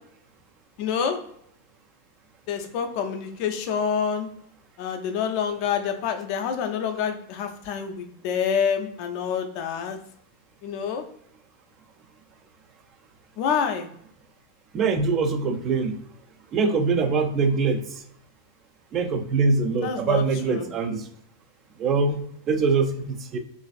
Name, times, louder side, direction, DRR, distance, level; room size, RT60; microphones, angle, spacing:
voice 1, 0.8-1.2 2.5-4.3 4.8-10.0 10.6-11.0 13.4-13.9 19.8-20.7, left 7 dB, 45° left, 5 dB, 0.5 m, -27 dB
voice 2, 14.7-16.0 16.5-18.0 18.9-21.1 21.8-23.4, right 4 dB, 30° right, 6 dB, 0.4 m, -23 dB
3.1 x 2.5 x 2.4 m, 0.69 s
figure-of-eight pair, 90°, 0 cm